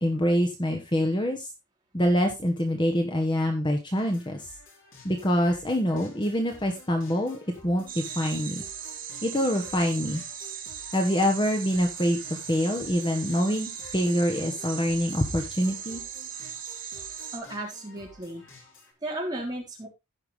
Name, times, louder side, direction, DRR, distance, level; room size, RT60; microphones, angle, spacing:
voice 1, 0.0-1.5 1.9-4.5 5.0-8.6 9.2-10.2 10.9-16.0, equal, 20° left, 3 dB, 1.2 m, -25 dB
sound 1, 4.0-18.9, left 2 dB, 60° left, 4.4 m, -51 dB
sound 2, 7.9-17.4, right 8 dB, 40° right, 1.6 m, -38 dB
voice 2, 17.3-18.4 19.0-19.9, right 1 dB, 20° right, -2 dB, 3.6 m, -34 dB
15.5 x 5.7 x 3.2 m, 0.23 s
head